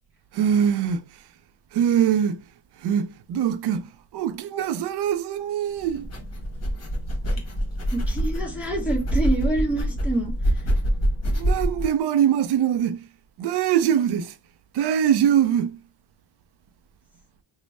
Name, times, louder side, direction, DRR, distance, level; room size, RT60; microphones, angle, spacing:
voice 1, 0.3-1.0 1.7-2.4 2.8-3.8 4.1-6.1 11.3-13.0 13.4-14.3 14.7-15.8, right 9 dB, 60° right, 0.5 m, -22 dB
sound 1, 5.8-11.9, equal, 30° left, 1.3 m, -25 dB
voice 2, 7.9-10.3, right 2 dB, 5° right, 1.0 m, -26 dB
3.1 x 2.2 x 4.1 m
cardioid pair, 110°, 48 cm